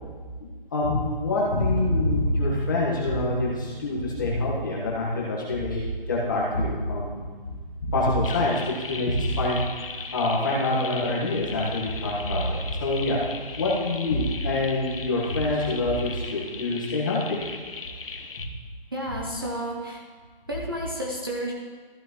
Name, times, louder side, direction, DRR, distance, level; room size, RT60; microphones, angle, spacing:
voice 1, 0.4-7.3 7.8-13.2 13.5-17.4, left 2 dB, 20° left, -5 dB, 1.5 m, -26 dB
sound 1, 1.8-4.9, right 1 dB, 80° right, 1.8 m, -32 dB
sound 2, 8.2-18.5, left 4 dB, 70° left, 1.0 m, -38 dB
voice 2, 18.9-20.0 20.5-21.5, equal, 25° right, -3 dB, 0.7 m, -31 dB
14.0 x 6.0 x 3.1 m, 1.5 s
hypercardioid pair, 175°, 29 cm